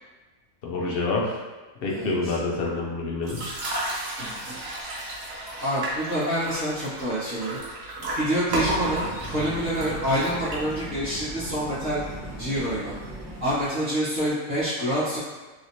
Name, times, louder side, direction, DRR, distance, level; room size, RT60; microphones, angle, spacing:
voice 1, 0.6-1.4 1.8-3.4, left 3 dB, 55° left, -2 dB, 0.7 m, -27 dB
voice 2, 1.9-2.3 5.6-7.6 8.1-12.0 12.4-12.9 13.4-15.2, equal, 35° right, -13 dB, 1.2 m, -27 dB
sound 1, 3.2-11.0, right 1 dB, 55° right, 0.8 m, -33 dB
sound 2, 8.5-13.7, right 1 dB, ahead, 0.9 m, -38 dB
3.1 x 2.9 x 2.7 m, 1.3 s
omnidirectional pair, 1.4 m